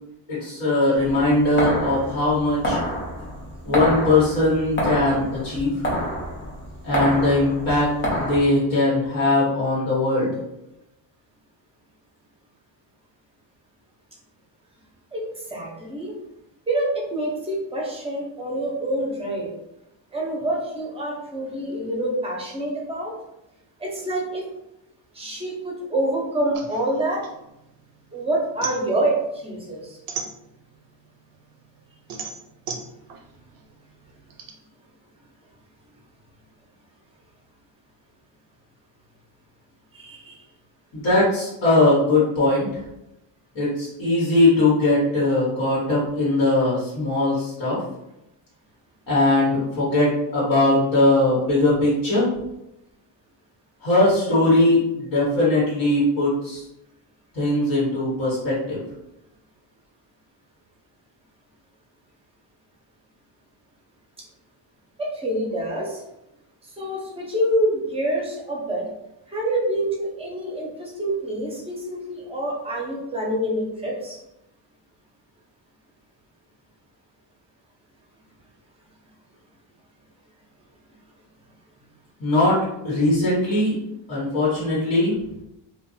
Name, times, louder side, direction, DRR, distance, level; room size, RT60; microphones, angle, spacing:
voice 1, 0.3-2.8 3.6-5.7 6.8-7.9 8.2-10.4 40.9-42.7 43.5-47.8 49.1-52.3 53.8-56.6 57.3-58.8 82.2-83.7 84.1-85.1, left 2 dB, 65° left, -8 dB, 1.3 m, -20 dB
sound 1, 0.9-8.4, equal, 25° left, 0.6 m, -28 dB
voice 2, 15.1-16.2 16.7-19.5 20.1-23.1 23.8-24.5 25.1-27.2 28.1-30.0 39.9-40.4 65.0-66.0 66.6-68.8 69.3-74.2, right 1 dB, 15° right, -2 dB, 0.7 m, -26 dB
sound 2, 26.5-28.0 28.3-30.9 31.3-34.5, right 5 dB, 50° right, 0.5 m, -36 dB
2.6 x 2.3 x 2.6 m, 0.87 s
cardioid pair, 125°, 46 cm